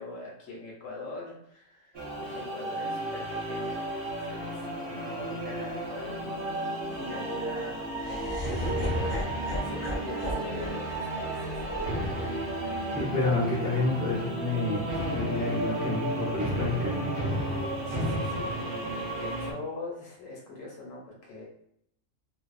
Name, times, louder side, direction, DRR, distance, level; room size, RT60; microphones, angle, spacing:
voice 1, 0.0-12.2 17.9-21.4, left 2 dB, 75° left, -2 dB, 1.1 m, -43 dB
sound 1, 1.9-19.5, right 1 dB, 55° right, 0.7 m, -32 dB
Laughter, 8.0-14.1, left 1 dB, 55° left, 0.5 m, -39 dB
voice 2, 12.9-17.1, left 2 dB, 10° right, -7 dB, 0.5 m, -29 dB
2.6 x 2.2 x 2.3 m, 0.70 s
omnidirectional pair, 1.4 m